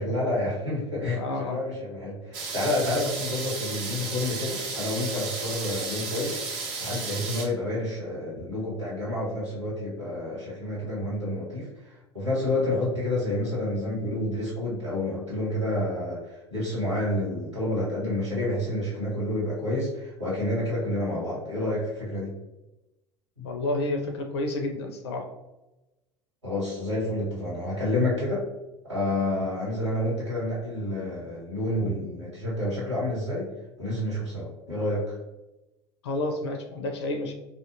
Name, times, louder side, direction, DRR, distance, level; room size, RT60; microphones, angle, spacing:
voice 1, 0.0-1.2 1.5-6.4 6.8-22.3 23.4-23.5 26.4-28.4 28.9-33.4 33.8-35.2, left 1 dB, 90° right, -7 dB, 1.2 m, -29 dB
voice 2, 1.1-1.6 23.4-25.2 36.0-37.3, left 2 dB, 70° left, 4 dB, 0.4 m, -30 dB
sound 1, 2.3-7.5, right 4 dB, 50° right, 0.6 m, -33 dB
2.5 x 2.1 x 2.6 m, 0.98 s
figure-of-eight pair, 70°, 15 cm